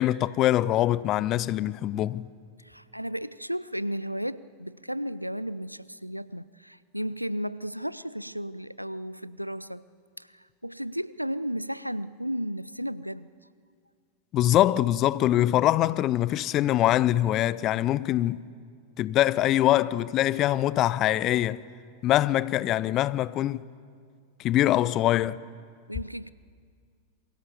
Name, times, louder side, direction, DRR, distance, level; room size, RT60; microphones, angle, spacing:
voice 1, 0.0-2.3 14.3-18.4 19.0-21.6 22.0-23.6 24.4-25.4, left 13 dB, 35° left, 0.6 m, -23 dB
voice 2, 2.6-9.8 10.2-13.3 25.9-26.3, equal, 90° right, 0.5 m, -34 dB
27.5 x 23.0 x 7.0 m
figure-of-eight pair, 90°, 0 cm